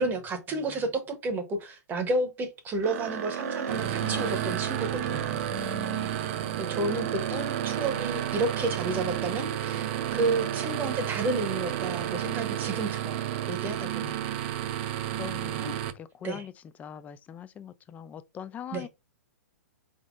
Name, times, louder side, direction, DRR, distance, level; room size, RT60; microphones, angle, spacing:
voice 1, 0.0-5.5 6.6-14.4 15.6-15.7 16.2-16.4 18.7-18.8, right 2 dB, 20° right, 0.9 m, -31 dB
voice 2, 0.5-0.8 3.7-4.6 5.5-6.3 7.3-7.6 14.4-14.6 15.2-18.9, left 8 dB, 15° left, 0.3 m, -42 dB
sound 1, 2.8-13.5, right 8 dB, 65° right, 0.9 m, -36 dB
sound 2, 3.7-15.9, right 12 dB, 45° right, 0.5 m, -32 dB
4.1 x 3.6 x 2.5 m
hypercardioid pair, 130°, 9 cm